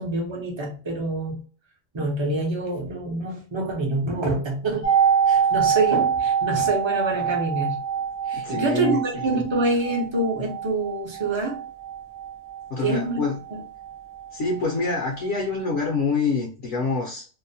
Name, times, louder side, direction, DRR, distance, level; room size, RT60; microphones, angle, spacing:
voice 1, 0.0-1.4 1.9-4.9 5.3-7.8 8.3-11.6 12.8-13.2 13.5-13.6, right 2 dB, 35° right, 0.4 m, -26 dB
sound 1, 4.8-14.6 14.8-14.9, right 7 dB, 15° left, 0.5 m, -25 dB
voice 2, 8.3-9.2 12.7-13.4 14.3-17.3, left 4 dB, 65° left, 0.9 m, -26 dB
2.7 x 2.1 x 2.6 m
omnidirectional pair, 1.4 m